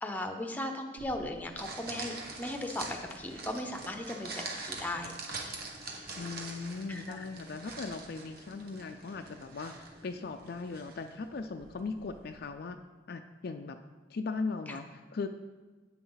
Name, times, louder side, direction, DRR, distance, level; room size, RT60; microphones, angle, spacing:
voice 1, 0.0-5.1 6.9-7.2 14.7-14.8, left 1 dB, 10° left, 4 dB, 0.8 m, -37 dB
sound 1, 1.0-12.4, right 3 dB, 50° right, 1.3 m, -45 dB
voice 2, 6.2-12.8 13.1-13.8 14.1-15.3, left 4 dB, 50° left, 7 dB, 0.4 m, -38 dB
10.0 x 8.6 x 4.0 m, 1.3 s
head